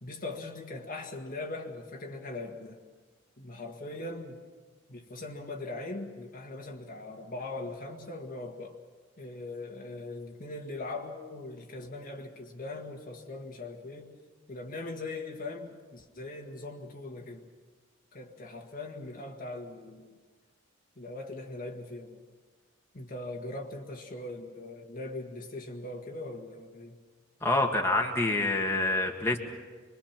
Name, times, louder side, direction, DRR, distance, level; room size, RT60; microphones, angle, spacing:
voice 1, 0.0-2.8 3.4-4.4 4.9-8.8 9.2-14.2 14.5-17.5 18.1-20.2 21.0-22.2 22.9-27.0, left 2 dB, 45° left, 2 dB, 1.8 m, -40 dB
voice 2, 27.4-29.4, left 2 dB, 15° left, 0 dB, 1.8 m, -26 dB
25.5 x 22.5 x 6.0 m, 1.4 s
head